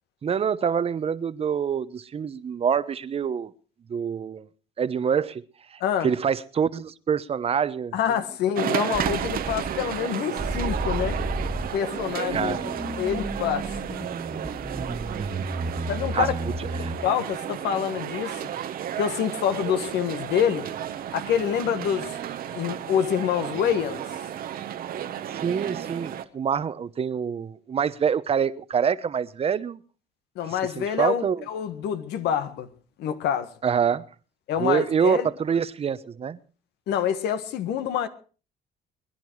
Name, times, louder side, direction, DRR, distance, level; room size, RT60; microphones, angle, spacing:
voice 1, 0.2-3.5 3.9-4.5 4.8-5.4 5.7-8.2 12.3-12.7 15.2-15.5 16.1-16.3 16.8-16.9 25.3-29.8 30.8-31.4 33.6-34.0 34.6-36.4, right 7 dB, 35° right, 1.0 m, -26 dB
voice 2, 7.9-11.2 11.7-13.6 15.9-16.3 17.0-18.5 19.0-20.7 21.1-22.1 22.5-24.0 30.4-32.7 33.0-33.5 34.5-35.3 36.9-38.1, left 9 dB, 80° left, 1.7 m, -26 dB
sound 1, 8.6-26.2, right 10 dB, 60° right, 1.2 m, -33 dB
sound 2, 8.9-10.0 10.4-17.0, right 1 dB, 10° right, 1.8 m, -32 dB
sound 3, 20.4-26.1, right 11 dB, 75° right, 3.3 m, -45 dB
22.5 x 10.5 x 4.7 m
cardioid pair, 110°, 17 cm